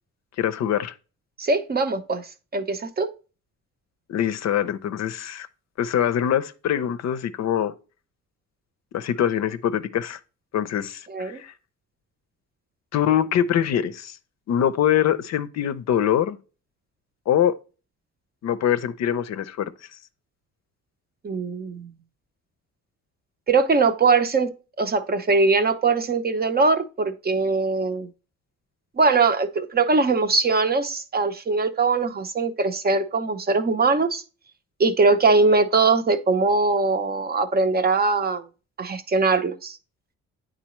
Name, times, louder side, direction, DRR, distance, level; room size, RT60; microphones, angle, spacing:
voice 1, 0.4-0.9 4.1-5.5 5.8-7.7 8.9-10.2 10.5-11.5 12.9-14.2 14.5-16.4 17.3-17.6 18.4-19.7, left 10 dB, 60° left, 0.5 m, -23 dB
voice 2, 1.4-2.2 2.5-3.1 11.1-11.4 21.2-21.9 23.5-28.1 29.0-34.2 34.8-38.4 38.8-39.8, right 3 dB, 30° right, 0.6 m, -21 dB
9.0 x 3.9 x 3.0 m
cardioid pair, 90°, 30 cm